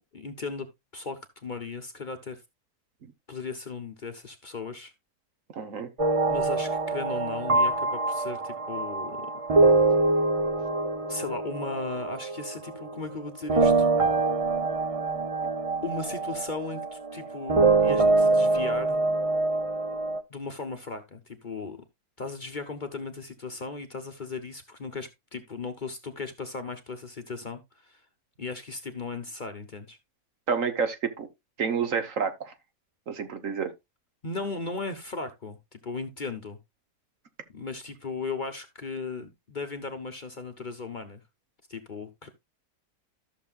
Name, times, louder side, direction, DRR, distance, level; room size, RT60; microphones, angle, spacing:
voice 1, 0.1-0.7 0.9-2.4 3.3-4.9 6.3-9.5 11.1-13.9 15.8-19.0 20.3-21.8 22.2-28.0 28.4-30.0 34.2-36.6 37.5-41.2 41.7-42.3, left 4 dB, 35° left, 1.1 m, -37 dB
voice 2, 5.5-5.9 30.5-31.3 31.6-32.5 33.1-33.7, right 6 dB, 60° right, 1.5 m, -29 dB
sound 1, 6.0-13.2 13.5-20.2, right 3 dB, 35° right, 0.6 m, -25 dB
14.0 x 6.6 x 2.3 m
omnidirectional pair, 1.6 m